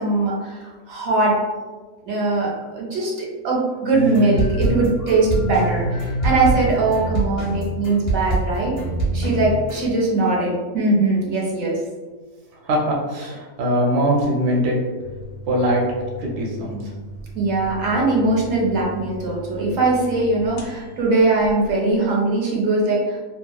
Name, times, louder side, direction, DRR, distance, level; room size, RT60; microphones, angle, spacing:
voice 1, 0.0-1.4 2.1-8.8 9.1-11.8 17.3-23.2, right 2 dB, 85° right, -3 dB, 1.1 m, -21 dB
sound 1, 3.9-9.8, right 1 dB, 35° left, 0.7 m, -24 dB
voice 2, 12.6-14.8 15.5-15.8 16.2-16.9, equal, 70° right, -2 dB, 0.8 m, -21 dB
sound 2, 15.0-22.1, right 2 dB, 65° left, 0.8 m, -38 dB
2.8 x 2.4 x 2.2 m, 1.4 s
omnidirectional pair, 1.4 m